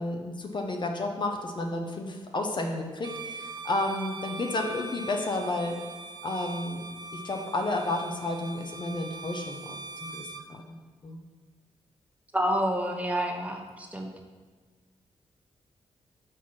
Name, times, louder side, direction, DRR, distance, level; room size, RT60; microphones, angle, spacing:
voice 1, 0.0-5.8 6.2-9.8 10.1-11.2, left 2 dB, 45° left, 3 dB, 0.8 m, -32 dB
Bowed string instrument, 3.0-10.5, right 3 dB, 40° right, 0.4 m, -42 dB
voice 2, 12.3-14.1, equal, 15° right, 2 dB, 1.0 m, -28 dB
4.5 x 4.5 x 5.9 m, 1.4 s
cardioid pair, 65°, 11 cm